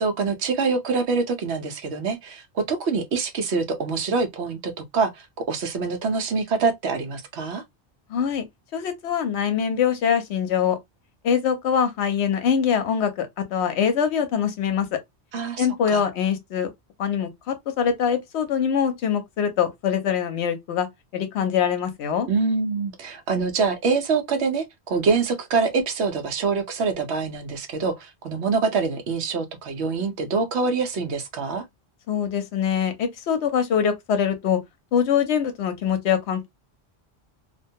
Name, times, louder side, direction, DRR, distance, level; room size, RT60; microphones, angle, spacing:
voice 1, 0.0-7.6 15.3-16.0 22.3-31.6, right 4 dB, 75° right, 0.9 m, -25 dB
voice 2, 8.1-8.4 8.7-10.8 11.2-14.9 15.6-16.7 17.0-20.9 21.1-22.3 32.1-34.6 34.9-36.5, left 7 dB, 80° left, 0.9 m, -23 dB
2.4 x 2.2 x 2.6 m
omnidirectional pair, 1.1 m